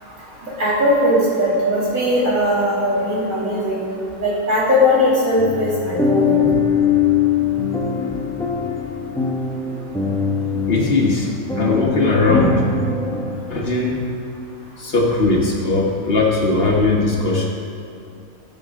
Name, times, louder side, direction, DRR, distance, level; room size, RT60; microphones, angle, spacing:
voice 1, 0.0-3.8 4.2-6.4, left 1 dB, 85° right, -8 dB, 3.3 m, -19 dB
sound 1, 5.4-13.3, left 6 dB, 5° left, 0.7 m, -21 dB
voice 2, 10.7-11.3 11.6-12.7 13.5-14.1 14.8-17.5, left 3 dB, 45° left, -2 dB, 1.5 m, -18 dB
14.5 x 6.9 x 3.7 m, 2.8 s
omnidirectional pair, 1.4 m